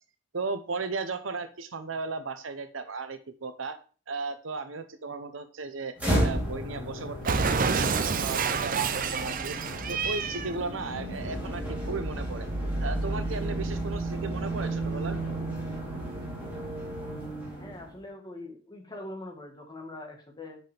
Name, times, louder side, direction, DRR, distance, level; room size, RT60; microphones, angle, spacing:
voice 1, 0.3-3.8 4.1-5.9 6.2-7.4 7.7-9.6 9.9-12.5 12.8-15.2, right 4 dB, 85° right, 10 dB, 0.8 m, -35 dB
sound 1, 6.0-18.0, right 1 dB, 10° right, 3.2 m, -33 dB
Cat, 7.2-10.5, right 5 dB, 45° right, 0.6 m, -28 dB
voice 2, 17.6-20.6, left 2 dB, 20° left, 1 dB, 1.6 m, -42 dB
8.1 x 6.0 x 3.4 m, 0.38 s
head